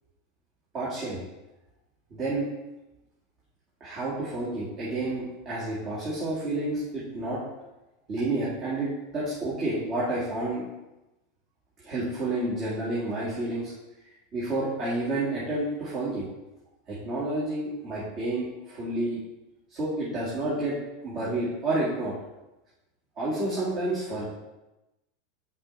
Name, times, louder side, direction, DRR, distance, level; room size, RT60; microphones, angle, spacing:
voice 1, 0.7-1.2 2.1-2.5 3.8-7.4 8.1-10.7 11.8-13.7 14.3-16.3 16.9-19.2 19.7-20.8 21.0-22.1 23.2-24.3, right 2 dB, 45° right, -8 dB, 2.0 m, -30 dB
5.5 x 4.4 x 4.0 m, 1.0 s
hypercardioid pair, 90°, 0 cm